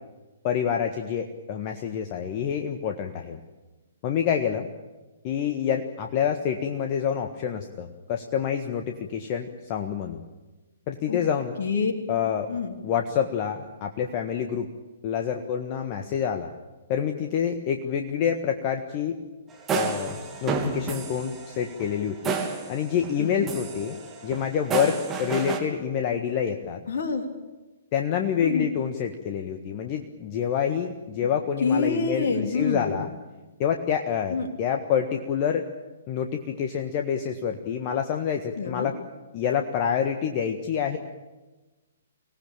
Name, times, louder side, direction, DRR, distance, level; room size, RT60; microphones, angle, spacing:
voice 1, 0.4-3.4 4.0-4.7 5.2-10.2 10.9-11.6 12.1-12.5 12.8-14.7 15.0-16.5 16.9-19.2 19.7-22.4 22.7-23.9 24.2-26.8 27.9-33.1 33.6-35.7 36.1-39.0 39.3-41.0, left 8 dB, 35° left, 5 dB, 1.5 m, -27 dB
voice 2, 11.6-11.9 12.5-12.7 23.2-23.5 26.9-27.2 28.4-28.7 31.6-33.0 34.3-34.5 38.6-38.9, left 4 dB, 55° left, 5 dB, 3.2 m, -26 dB
sound 1, 19.5-23.2 23.5-25.6, right 5 dB, 15° right, 3.2 m, -31 dB
25.0 x 18.5 x 8.9 m, 1.2 s
figure-of-eight pair, 120°, 0 cm